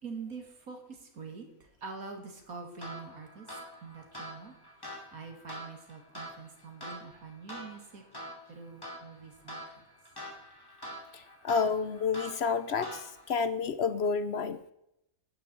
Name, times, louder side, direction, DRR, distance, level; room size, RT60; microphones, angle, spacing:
voice 1, 0.0-4.5 4.8-8.0 8.5-9.8, right 5 dB, 90° right, 4 dB, 2.5 m, -45 dB
sound 1, 2.8-13.4, equal, 15° left, 2.2 m, -46 dB
voice 2, 11.1-14.6, left 5 dB, 60° left, 13 dB, 0.8 m, -30 dB
11.5 x 9.8 x 4.4 m, 0.80 s
omnidirectional pair, 1.5 m